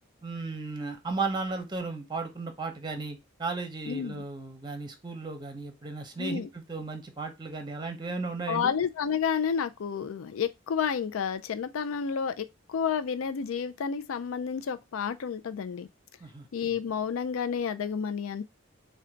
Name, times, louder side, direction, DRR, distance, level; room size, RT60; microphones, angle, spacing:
voice 1, 0.2-8.7 16.2-16.5, right 3 dB, 20° right, 0.7 m, -35 dB
voice 2, 3.9-4.2 6.2-6.5 8.5-15.9 16.5-18.4, left 7 dB, 80° left, 0.4 m, -30 dB
3.8 x 2.2 x 4.4 m
head